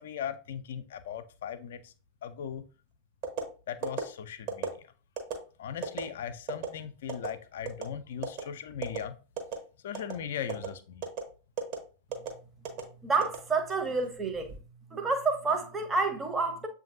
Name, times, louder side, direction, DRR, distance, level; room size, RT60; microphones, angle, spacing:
voice 1, 0.0-1.9 2.2-2.6 3.7-4.7 5.6-9.2 9.8-11.0, left 8 dB, 60° left, 0.4 m, -38 dB
sound 1, 3.2-3.5 3.8-4.0 4.5-4.7 5.2-5.3 5.8-6.0 6.5-6.7 7.1-7.3 7.7-7.9 8.2-8.4 8.8-9.0 9.4-9.6 9.9-10.1 10.5-10.7 11.0-11.2 11.6-11.8 12.1-12.3 12.6-12.8 13.2-13.9 14.3-14.6, right 9 dB, 45° right, 1.0 m, -33 dB
voice 2, 13.0-14.5 14.9-16.7, right 3 dB, 15° right, 0.7 m, -29 dB
7.1 x 2.6 x 2.5 m
figure-of-eight pair, 90°, 0 cm